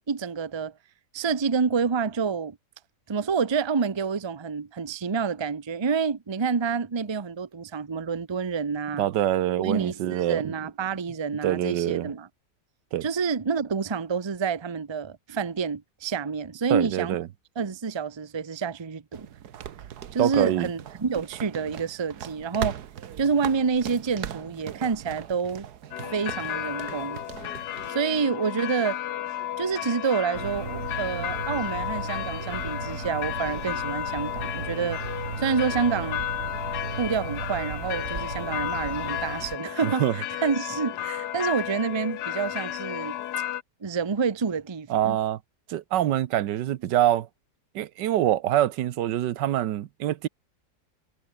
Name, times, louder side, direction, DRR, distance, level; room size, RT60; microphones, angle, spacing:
voice 1, 0.1-0.7 1.1-2.6 3.1-9.1 9.6-12.3 13.0-17.2 17.6-19.3 20.1-22.8 23.2-25.7 26.0-27.2 27.9-29.0 29.6-35.0 35.4-36.3 37.0-43.2 43.8-45.2, right 5 dB, 25° right, 0.6 m, -28 dB
voice 2, 9.0-10.4 11.4-12.1 12.9-13.1 16.7-17.3 20.2-20.7 39.8-40.1 44.9-45.4 45.7-47.3 47.7-50.3, right 12 dB, 85° right, 1.5 m, -25 dB
sound 1, 19.1-27.9, right 9 dB, 65° right, 1.6 m, -39 dB
sound 2, 25.9-43.6, left 12 dB, 70° left, 1.3 m, -33 dB
sound 3, 30.3-39.6, right 5 dB, 50° right, 2.5 m, -36 dB
omnidirectional pair, 1.8 m